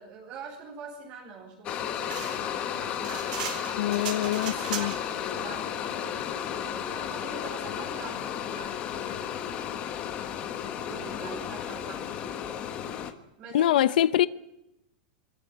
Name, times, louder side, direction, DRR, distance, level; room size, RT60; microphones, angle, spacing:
voice 1, 0.0-3.5 3.9-9.9 10.5-12.8 13.4-14.1, right 5 dB, 30° right, 4.4 m, -45 dB
boil water in electric kettle, 1.6-13.1, left 9 dB, 25° left, 1.4 m, -33 dB
sound 1, 2.0-5.2, right 8 dB, 60° right, 4.4 m, -38 dB
sound 2, 3.1-8.4, right 5 dB, 90° right, 6.6 m, -52 dB
voice 2, 3.8-4.9 13.5-14.3, left 12 dB, 65° left, 0.7 m, -24 dB
25.5 x 14.0 x 9.5 m
supercardioid pair, 175°, 5 cm